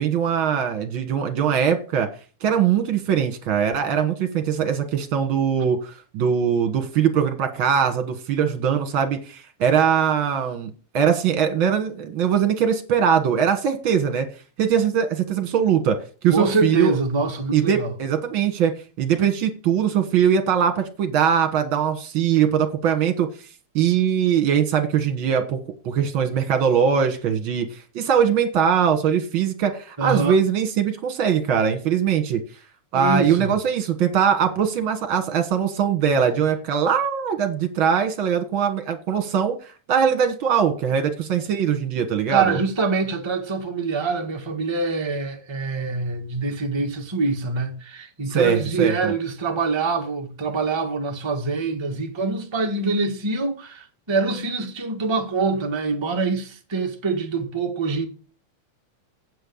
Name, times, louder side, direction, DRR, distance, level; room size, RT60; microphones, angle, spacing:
voice 1, 0.0-2.1 2.4-14.3 14.6-16.0 16.2-17.0 17.5-18.7 19.0-23.3 23.7-25.6 25.8-27.7 27.9-32.4 32.9-42.6 48.3-49.1, right 7 dB, 50° right, 2.0 m, -21 dB
voice 2, 16.3-17.9 30.0-30.4 32.9-33.6 42.3-58.1, right 4 dB, 20° right, 0.6 m, -25 dB
8.5 x 5.7 x 7.0 m
omnidirectional pair, 3.3 m